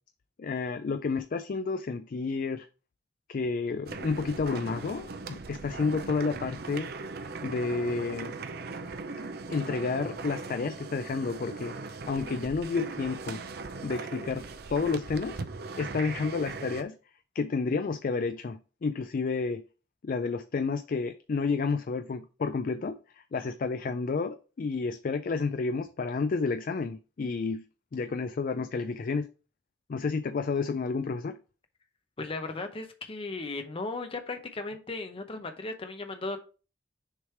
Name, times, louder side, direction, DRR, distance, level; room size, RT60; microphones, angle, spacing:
voice 1, 0.4-2.7 3.3-6.9 7.4-8.4 9.5-11.8 12.1-13.4 13.8-15.4 15.8-17.0 17.4-19.6 20.0-27.7 27.9-29.3 29.9-31.4, left 4 dB, 50° left, 0.4 m, -30 dB
sound 1, 3.9-16.8, right 3 dB, 60° right, 0.6 m, -39 dB
voice 2, 32.2-36.4, left 3 dB, 30° left, 0.7 m, -36 dB
6.6 x 3.2 x 4.4 m
head